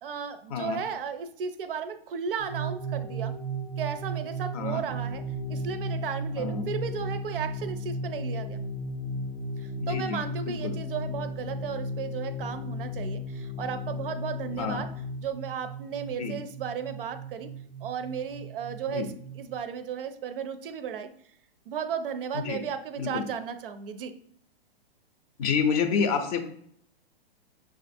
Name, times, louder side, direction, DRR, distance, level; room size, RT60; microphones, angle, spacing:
voice 1, 0.0-3.4 3.8-8.6 9.6-14.9 15.2-17.5 17.8-21.1 21.7-24.1, right 7 dB, 60° right, 10 dB, 0.5 m, -35 dB
sound 1, 2.4-19.6, right 8 dB, 10° right, 0.5 m, -37 dB
voice 2, 4.5-4.8 6.4-6.7 9.8-10.2 10.5-10.8 14.6-14.8 16.2-16.3 18.9-19.1 22.3-22.6 23.0-23.2 25.4-26.4, left 6 dB, 40° left, 7 dB, 0.5 m, -28 dB
Organ, 4.7-15.4, left 12 dB, 85° left, 0.6 m, -37 dB
5.9 x 2.4 x 2.6 m, 0.65 s
hypercardioid pair, 135°, 31 cm